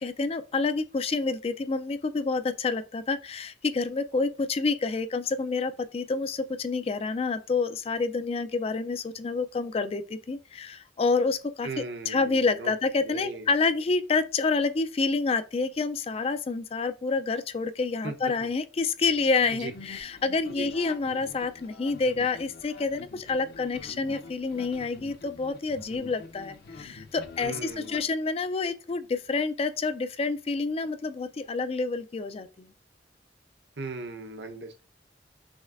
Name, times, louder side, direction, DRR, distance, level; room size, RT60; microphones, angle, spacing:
voice 1, 0.0-32.7, left 4 dB, 35° left, 0.3 m, -28 dB
voice 2, 11.6-12.7 13.0-13.5 18.0-18.1 19.5-19.7 20.5-20.7 27.4-28.1 33.8-34.8, right 3 dB, 70° right, 0.9 m, -38 dB
sound 1, 19.0-28.0, left 3 dB, 60° left, 0.7 m, -47 dB
6.3 x 3.1 x 2.5 m
head